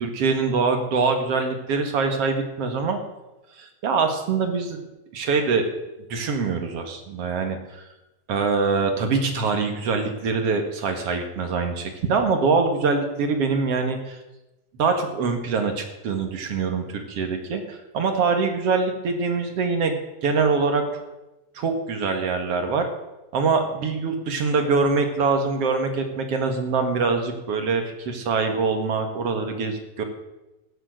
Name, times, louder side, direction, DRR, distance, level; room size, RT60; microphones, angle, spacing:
voice 1, 0.0-3.0 3.6-4.8 5.1-5.7 6.1-7.9 8.3-14.2 14.8-20.8 21.5-22.9 23.3-30.0, right 4 dB, 55° right, 5 dB, 2.5 m, -24 dB
15.5 x 10.5 x 6.3 m, 1.0 s
omnidirectional pair, 3.3 m